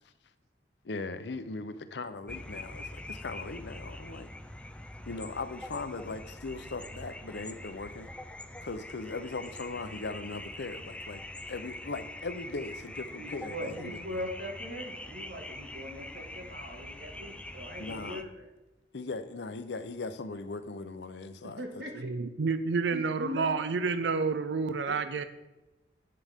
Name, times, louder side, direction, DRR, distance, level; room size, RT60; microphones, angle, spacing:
voice 1, 0.8-4.3 5.1-8.1 8.6-11.2 11.5-14.0 17.8-18.2 18.9-21.6, left 3 dB, 75° left, 11 dB, 0.7 m, -39 dB
sound 1, 2.3-18.2, left 1 dB, 5° left, 0.5 m, -44 dB
voice 2, 13.1-18.4 21.4-22.1 22.9-23.5 24.9-25.0, left 1 dB, 70° right, 2 dB, 1.8 m, -40 dB
voice 3, 22.0-25.2, right 4 dB, 85° right, 11 dB, 0.5 m, -29 dB
11.0 x 8.8 x 3.6 m, 1.0 s
head